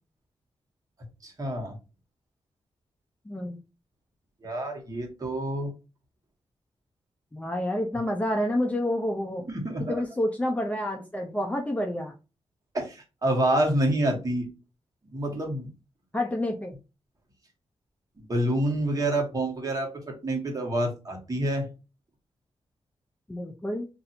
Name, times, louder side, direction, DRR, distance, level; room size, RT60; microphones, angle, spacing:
voice 1, 1.2-1.8 4.4-5.7 9.5-10.0 12.7-14.5 15.1-15.7 18.2-21.7, right 1 dB, 35° right, 1 dB, 1.2 m, -27 dB
voice 2, 3.3-3.6 7.3-9.4 9.9-12.1 16.1-16.7 23.3-23.9, left 1 dB, 15° left, 2 dB, 0.5 m, -28 dB
2.6 x 2.6 x 4.2 m, 0.30 s
wide cardioid pair, 110°, 11 cm